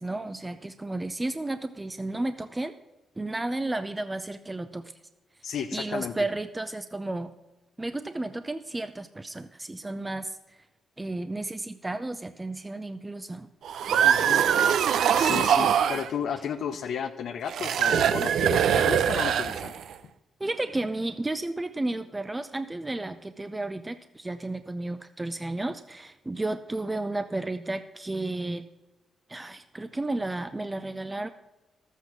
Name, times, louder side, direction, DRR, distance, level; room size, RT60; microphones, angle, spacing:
voice 1, 0.0-2.7 3.2-4.9 5.7-7.3 7.8-10.6 11.0-13.5 20.4-28.7 29.3-31.3, right 2 dB, 15° right, 10 dB, 0.5 m, -32 dB
voice 2, 5.4-6.1 14.0-14.5 15.2-19.7, left 8 dB, 70° left, 6 dB, 0.6 m, -33 dB
sound 1, 13.6-16.1 17.5-19.9, right 8 dB, 75° right, 0.5 m, -23 dB
12.5 x 8.2 x 6.0 m, 1.1 s
cardioid pair, 85°, 0 cm